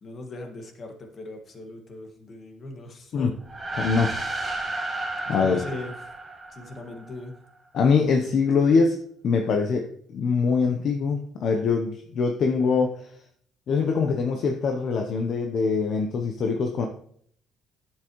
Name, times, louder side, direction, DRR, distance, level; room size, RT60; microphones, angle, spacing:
voice 1, 0.0-3.3 5.3-6.0 6.5-7.4, left 2 dB, 40° left, 4 dB, 1.8 m, -39 dB
sound 1, 3.4-7.1, right 2 dB, 15° right, 2.1 m, -32 dB
voice 2, 3.8-4.2 5.3-5.6 7.7-9.0 9.2-13.1 13.7-16.9, left 5 dB, 55° left, 4 dB, 0.9 m, -23 dB
10.5 x 7.5 x 3.1 m, 0.62 s
cardioid pair, 125°, 0 cm